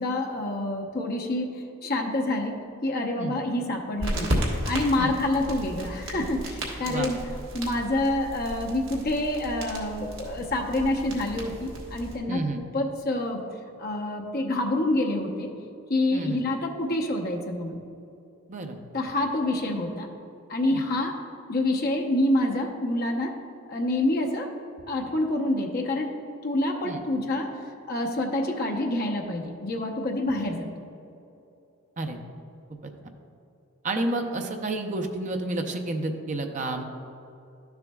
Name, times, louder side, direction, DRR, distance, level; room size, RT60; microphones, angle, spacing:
voice 1, 0.0-4.3 4.6-7.2 7.5-12.4 12.7-13.4 13.8-15.5 15.9-17.8 18.9-20.1 20.5-21.2 21.5-23.4 23.7-24.5 24.9-26.1 26.4-27.6 27.8-30.7, left 1 dB, 45° left, 1 dB, 0.8 m, -27 dB
sound 1, 4.0-12.2, equal, 60° right, 1.4 m, -34 dB
voice 2, 12.3-12.6 16.1-16.4 18.5-18.8 20.7-20.8 26.8-27.0 32.0-32.2 32.8-32.9 33.8-36.8, right 2 dB, 35° right, 4 dB, 0.6 m, -30 dB
12.0 x 6.9 x 2.3 m, 2.7 s
head